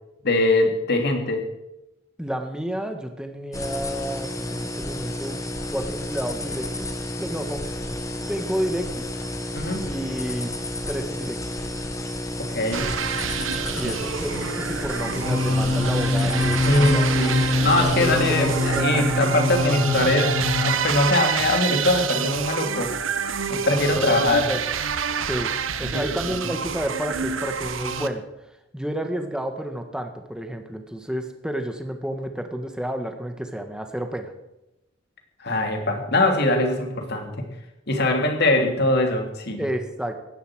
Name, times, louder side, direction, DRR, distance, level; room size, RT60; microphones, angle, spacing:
voice 1, 0.2-1.4 9.5-9.8 12.4-12.9 16.6-22.9 23.5-24.5 26.3-26.4 35.4-37.5 37.9-39.7, left 2 dB, 55° left, 3 dB, 3.0 m, -22 dB
voice 2, 2.2-5.4 5.7-6.9 7.2-7.6 8.3-9.0 9.8-10.5 10.9-11.4 13.7-17.1 18.0-19.1 23.9-24.6 25.2-25.5 25.8-28.2 28.7-34.3 39.6-40.2, right 1 dB, 5° right, 5 dB, 1.7 m, -30 dB
sound 1, 3.5-18.8, left 1 dB, 15° left, 1.6 m, -31 dB
sound 2, 12.7-28.1, right 6 dB, 90° right, 1.1 m, -28 dB
sound 3, 15.2-20.7, left 2 dB, 30° right, 4.4 m, -24 dB
16.5 x 11.5 x 6.3 m, 0.91 s
head